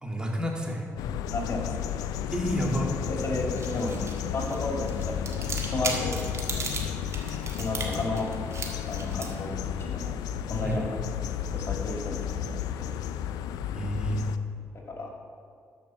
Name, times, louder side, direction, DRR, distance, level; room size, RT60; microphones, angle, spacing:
voice 1, 0.0-0.9 2.3-2.9 10.6-10.8 13.7-14.3, equal, 15° right, -1 dB, 2.4 m, -29 dB
sound 1, 1.0-14.4, left 10 dB, 85° left, 0.4 m, -33 dB
voice 2, 1.3-1.8 3.1-4.0 4.3-6.2 7.6-8.3 8.8-10.2 10.5-10.9 11.5-12.9 14.7-15.1, left 2 dB, 40° left, 0 dB, 2.4 m, -33 dB
sound 2, 3.3-11.7, right 3 dB, 50° right, 1.6 m, -39 dB
13.0 x 5.1 x 5.8 m, 2.3 s
supercardioid pair, 50°, 6 cm